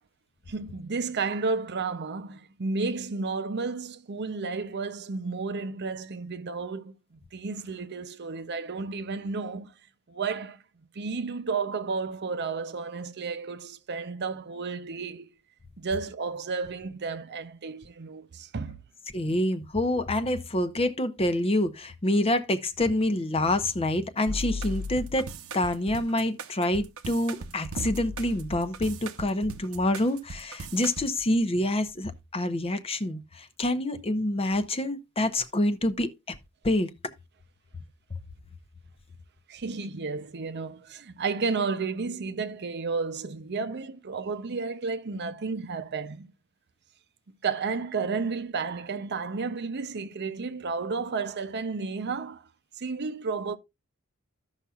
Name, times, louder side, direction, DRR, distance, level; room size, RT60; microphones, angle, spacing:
voice 1, 0.5-9.7 10.1-10.6 10.9-15.3 15.8-18.8 39.5-46.3 47.3-52.5 52.8-53.6, right 4 dB, 55° right, 0.6 m, -32 dB
voice 2, 19.1-25.3 25.5-36.4 36.6-36.9, left 1 dB, 25° left, 0.7 m, -27 dB
sound 1, 24.3-31.1, equal, 80° right, 0.8 m, -37 dB
15.0 x 5.7 x 2.4 m
head